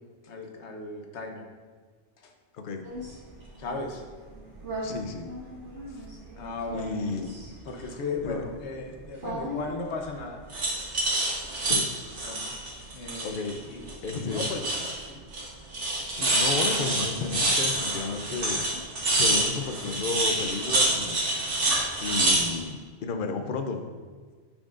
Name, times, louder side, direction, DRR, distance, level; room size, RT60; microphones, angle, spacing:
voice 1, 0.2-1.5 3.6-4.0 5.9-6.0 6.4-7.0 7.7-10.4 12.2-12.6 12.9-15.2, left 3 dB, 75° left, 3 dB, 1.2 m, -36 dB
sound 1, 2.8-3.1 4.5-4.8 5.2-6.1 6.6-7.5 9.2-9.7 10.5-13.6 13.9-15.0 15.3-15.5 15.7-22.5, right 2 dB, 85° right, 1.7 m, -27 dB
voice 2, 4.8-5.3 6.7-7.3 8.2-8.4 11.6-11.9 13.2-13.6 14.0-14.5 16.1-18.6 19.1-21.3 22.0-23.8, left 4 dB, 55° left, 6 dB, 0.8 m, -32 dB
9.8 x 6.2 x 2.5 m, 1.5 s
omnidirectional pair, 1.2 m